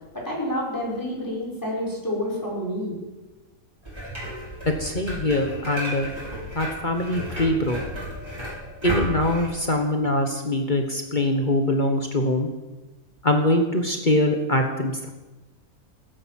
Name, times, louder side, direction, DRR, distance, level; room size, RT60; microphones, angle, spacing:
voice 1, 0.2-3.0, left 1 dB, 15° left, -3 dB, 5.7 m, -28 dB
sound 1, 3.8-9.5, equal, 15° right, 7.2 m, -33 dB
voice 2, 4.6-6.1 6.5-7.8 8.8-12.5 13.2-15.1, left 1 dB, 35° left, 4 dB, 1.5 m, -23 dB
17.0 x 10.5 x 7.7 m, 1.1 s
omnidirectional pair, 1.5 m